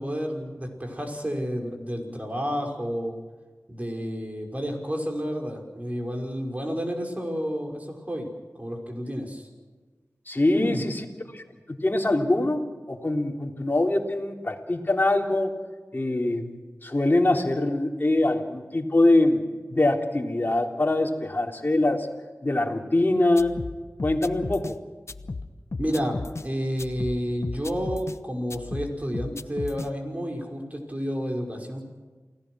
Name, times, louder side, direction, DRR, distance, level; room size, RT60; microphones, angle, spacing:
voice 1, 0.0-3.1 3.7-8.3 8.6-9.5 10.5-10.8 25.8-31.8, equal, 25° right, 2 dB, 5.4 m, -30 dB
voice 2, 10.3-10.9 11.3-11.4 11.8-15.5 15.9-16.5 16.8-19.4 19.7-22.1 22.4-23.6 24.0-24.8, left 2 dB, 35° left, 1 dB, 3.6 m, -23 dB
sound 1, 23.4-24.8 25.1-26.5 26.8-28.2 28.5-29.9, left 3 dB, 55° left, 1.0 m, -35 dB
29.0 x 18.0 x 6.3 m, 1.4 s
wide cardioid pair, 55°, 5 cm